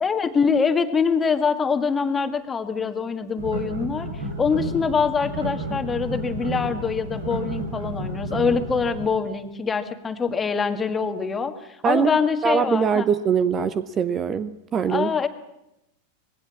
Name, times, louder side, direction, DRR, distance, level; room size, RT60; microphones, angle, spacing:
voice 1, 0.0-4.1 4.4-11.5 11.8-13.1 14.9-15.3, left 5 dB, 15° left, 8 dB, 1.8 m, -24 dB
sound 1, 3.4-9.0, right 1 dB, 80° right, 5.2 m, -31 dB
voice 2, 12.4-15.1, right 7 dB, 25° right, 14 dB, 0.9 m, -22 dB
25.0 x 20.5 x 7.4 m, 0.89 s
figure-of-eight pair, 90°, 0 cm